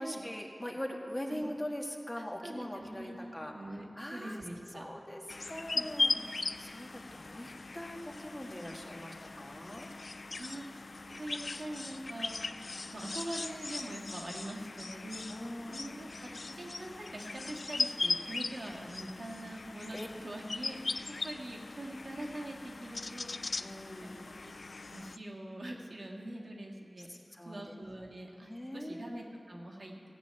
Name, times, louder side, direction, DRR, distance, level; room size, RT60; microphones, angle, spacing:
voice 1, 0.0-3.5 3.9-4.4 4.7-5.2 5.5-6.1 6.4-9.9 15.3-16.0 19.9-20.1 23.6-24.3 27.1-27.7 28.5-29.1, equal, 20° left, 0 dB, 1.6 m, -42 dB
voice 2, 2.2-4.9 5.7-5.8 6.1-6.5 10.4-12.5 12.9-23.3 24.0-24.5 24.9-30.1, right 1 dB, 75° right, -2 dB, 1.8 m, -44 dB
sound 1, 5.3-25.2, left 3 dB, 75° left, 0.3 m, -39 dB
15.5 x 6.2 x 8.8 m, 2.6 s
wide cardioid pair, 65°, 0 cm